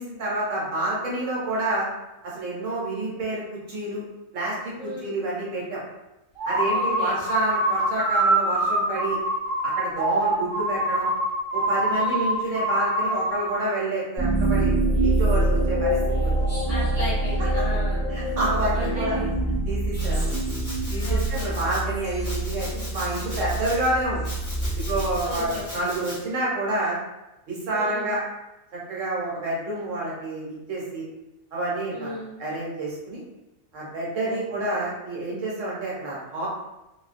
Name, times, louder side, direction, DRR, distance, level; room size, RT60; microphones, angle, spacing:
voice 1, 0.0-1.9 2.2-3.4 3.7-4.0 4.3-5.8 6.5-9.2 9.6-11.1 11.5-14.7 15.0-16.0 16.2-16.3 18.1-19.2 19.6-20.3 20.9-24.3 24.9-27.0 27.5-28.2 28.7-31.0 31.5-33.2 33.7-36.5, right 2 dB, 65° right, -6 dB, 1.1 m, -28 dB
voice 2, 4.7-5.1 6.7-7.2 11.9-12.4 16.7-18.1 18.7-19.3 21.0-21.6 25.2-25.9 27.7-28.2 31.9-32.4 34.2-34.4, equal, 50° left, -11 dB, 0.4 m, -35 dB
sound 1, 6.4-13.6, right 1 dB, 45° right, 0.8 m, -24 dB
sound 2, 14.2-25.7, right 1 dB, 15° right, 0.9 m, -25 dB
Domestic sounds home sounds, 19.9-21.8 22.2-23.9 24.2-26.2, left 1 dB, 35° left, 0.9 m, -39 dB
2.4 x 2.1 x 2.4 m, 0.96 s
omnidirectional pair, 1.5 m